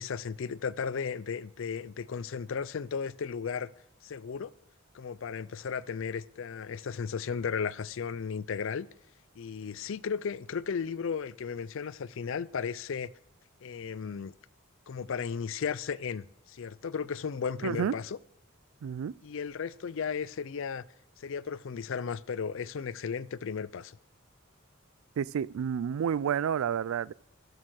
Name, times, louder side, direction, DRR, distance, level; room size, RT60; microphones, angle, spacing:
voice 1, 0.0-3.7 4.0-4.5 4.9-8.9 9.4-13.1 13.6-14.3 14.9-18.2 19.2-20.8 21.2-24.0, left 6 dB, 60° left, 0.4 m, -35 dB
voice 2, 17.6-17.9 18.8-19.1 25.2-27.1, right 8 dB, 70° right, 0.3 m, -30 dB
13.0 x 6.7 x 6.3 m
head